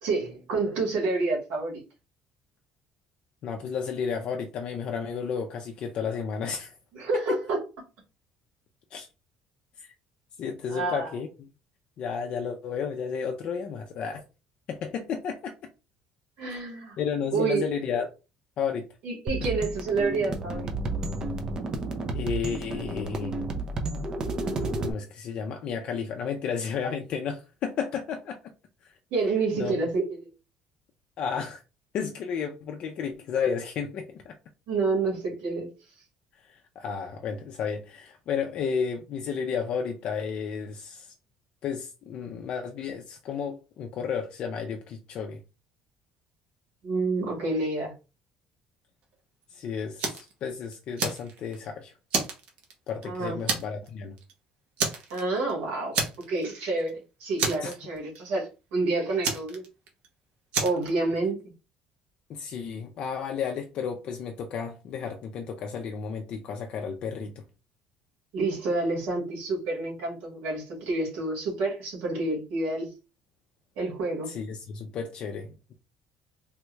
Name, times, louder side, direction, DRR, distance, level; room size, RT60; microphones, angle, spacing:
voice 1, 0.0-1.8 6.9-7.6 10.7-11.1 16.4-17.0 17.3-17.7 19.0-20.7 29.1-30.3 34.7-35.7 46.8-47.9 53.0-53.4 55.1-56.0 56.3-59.6 60.6-61.4 68.3-72.9 73.8-74.3, right 3 dB, 85° right, 1.8 m, -28 dB
voice 2, 3.4-6.7 7.1-7.4 8.9-9.1 9.8-9.9 10.4-11.5 12.0-14.2 14.7-15.5 16.5-16.6 17.0-18.1 18.6-18.9 22.1-23.5 24.8-28.4 28.8-28.9 29.5-29.9 31.2-31.6 31.9-34.4 36.4-41.1 41.6-45.4 49.5-51.9 52.9-54.1 57.6-57.7 62.3-67.4 74.3-75.7, left 6 dB, 50° left, 0.4 m, -32 dB
sound 1, 19.3-24.9, right 2 dB, 30° right, 0.5 m, -31 dB
Fire, 50.0-50.3 50.7-51.6 52.1-53.0 53.5-53.9 54.2-54.3 54.8-55.5 55.9-56.5 56.8-56.9 57.4-58.2 59.2-60.1 60.5-60.9, right 4 dB, 60° right, 0.9 m, -29 dB
3.4 x 2.2 x 3.0 m
cardioid pair, 155°, 2 cm